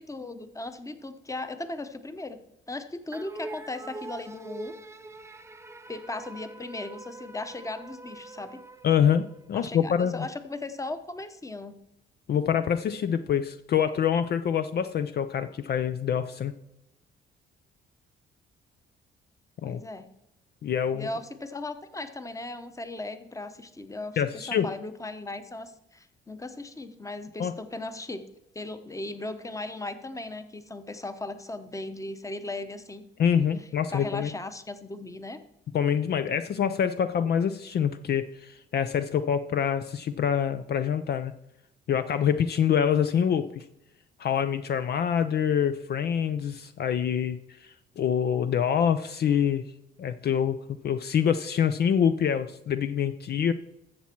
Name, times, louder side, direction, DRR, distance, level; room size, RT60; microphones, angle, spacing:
voice 1, 0.0-2.4 2.7-4.7 5.9-8.6 9.5-11.8 19.6-20.1 20.9-28.2 28.5-33.0 33.9-35.4, left 2 dB, 15° left, 10 dB, 1.0 m, -37 dB
sound 1, 3.1-9.7, right 2 dB, 15° right, 0.6 m, -43 dB
voice 2, 8.8-10.3 12.3-16.5 19.6-19.8 20.6-21.1 24.2-24.7 27.4-27.5 33.2-34.3 35.7-41.3 41.9-43.6 44.2-49.6 50.0-53.5, left 8 dB, 55° left, 10 dB, 0.5 m, -26 dB
13.0 x 7.3 x 4.5 m, 0.84 s
cardioid pair, 90°, 20 cm